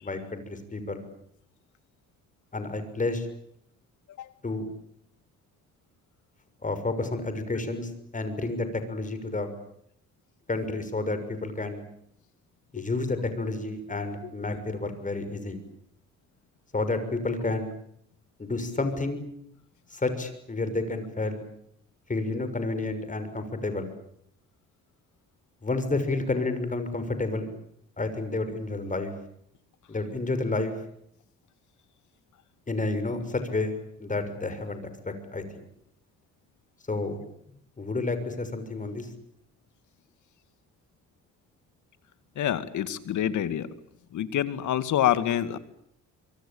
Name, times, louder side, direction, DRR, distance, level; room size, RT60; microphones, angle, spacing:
voice 1, 0.0-1.0 2.5-3.3 4.4-4.7 6.6-9.5 10.5-11.8 12.7-15.6 16.7-17.7 18.4-19.2 19.9-21.4 22.1-23.9 25.6-27.5 28.0-29.1 29.9-30.7 32.7-33.7 34.0-35.6 36.9-37.2 37.8-39.1, left 2 dB, 25° left, 10 dB, 6.5 m, -30 dB
voice 2, 42.4-43.7 44.1-45.6, left 11 dB, 75° left, 13 dB, 2.3 m, -27 dB
25.5 x 24.0 x 8.8 m, 0.72 s
cardioid pair, 90°, 30 cm